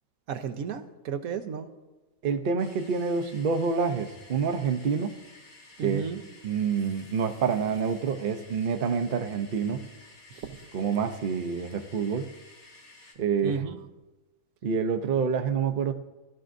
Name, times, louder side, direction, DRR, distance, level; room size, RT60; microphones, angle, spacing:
voice 1, 0.3-1.7 5.8-6.2 10.3-10.6 13.4-13.8, right 7 dB, 85° right, 6 dB, 1.3 m, -33 dB
voice 2, 2.2-5.1 5.8-6.0 6.4-9.9 10.7-12.3 13.2-13.6 14.6-15.9, right 6 dB, 50° right, 7 dB, 0.7 m, -27 dB
sound 1, 2.6-13.1, left 2 dB, 85° left, 2.4 m, -53 dB
16.5 x 12.0 x 2.6 m, 1.1 s
omnidirectional pair, 1.4 m